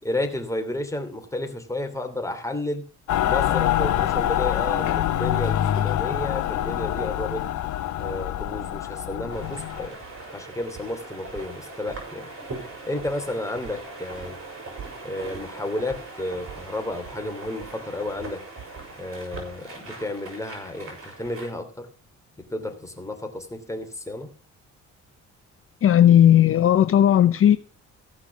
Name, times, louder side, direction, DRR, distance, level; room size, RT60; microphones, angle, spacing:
voice 1, 0.0-2.8 3.3-7.5 8.0-10.0 10.3-12.3 12.8-14.4 15.0-18.4 19.0-21.9 22.4-24.3, left 1 dB, 10° left, 2.7 m, -32 dB
Mechanical fan, 3.1-9.9, left 12 dB, 75° left, 1.0 m, -25 dB
sound 1, 9.3-21.5, right 3 dB, 45° right, 5.5 m, -40 dB
voice 2, 25.8-27.6, left 10 dB, 45° left, 0.6 m, -15 dB
15.0 x 6.0 x 7.0 m
cardioid pair, 90°, 30 cm